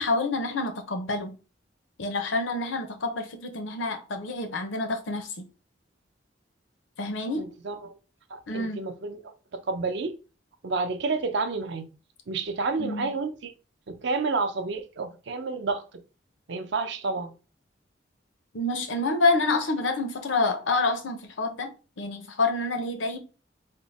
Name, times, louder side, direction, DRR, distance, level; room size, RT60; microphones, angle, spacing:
voice 1, 0.0-1.4 2.0-5.5 7.0-7.5 8.5-8.8 12.8-13.1 18.5-23.2, left 3 dB, 85° left, 0.7 m, -28 dB
voice 2, 7.4-7.9 8.3-9.2 9.5-10.1 10.6-11.9 12.3-13.5 13.9-15.8 16.5-17.3, right 4 dB, 65° right, 0.5 m, -30 dB
3.6 x 2.1 x 4.0 m
head